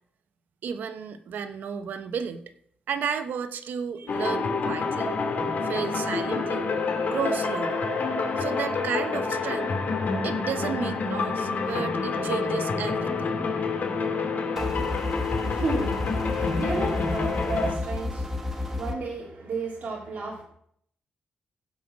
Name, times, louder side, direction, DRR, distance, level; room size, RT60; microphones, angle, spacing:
voice 1, 0.6-2.5 2.9-5.1 5.6-6.7 7.0-7.8 8.4-9.7 10.2-13.4, right 7 dB, 85° right, 9 dB, 1.0 m, -33 dB
sound 1, 4.1-17.7, left 4 dB, 65° left, 2.5 m, -28 dB
sound 2, 14.6-18.9, left 2 dB, 15° right, 1.7 m, -31 dB
voice 2, 14.7-20.4, right 3 dB, 60° right, -4 dB, 3.1 m, -34 dB
16.0 x 5.6 x 6.2 m, 0.67 s
wide cardioid pair, 120°, 3 cm